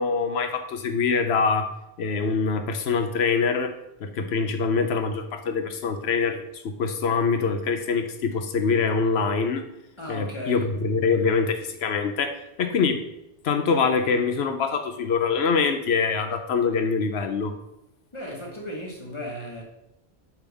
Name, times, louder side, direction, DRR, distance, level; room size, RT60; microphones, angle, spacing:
voice 1, 0.0-1.7 2.0-3.7 4.0-9.6 10.1-13.1 13.4-17.5, left 5 dB, 75° left, 1.0 m, -24 dB
voice 2, 10.0-10.7 18.1-19.6, left 1 dB, 25° left, 1.4 m, -35 dB
7.2 x 5.3 x 3.4 m
omnidirectional pair, 1.1 m